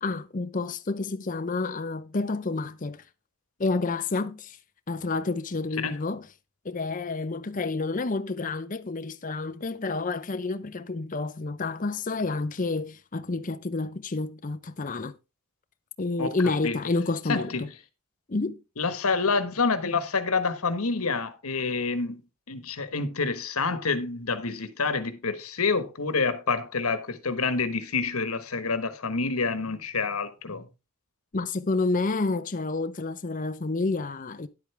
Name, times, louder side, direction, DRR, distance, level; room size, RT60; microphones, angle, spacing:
voice 1, 0.0-3.1 3.6-4.6 4.9-6.3 6.6-15.2 16.0-17.7 18.3-18.6 31.3-34.5, left 3 dB, 35° left, 0.6 m, -29 dB
voice 2, 17.3-17.6 18.8-22.2 22.5-30.6, left 4 dB, 85° left, 1.4 m, -27 dB
10.5 x 8.2 x 3.3 m
head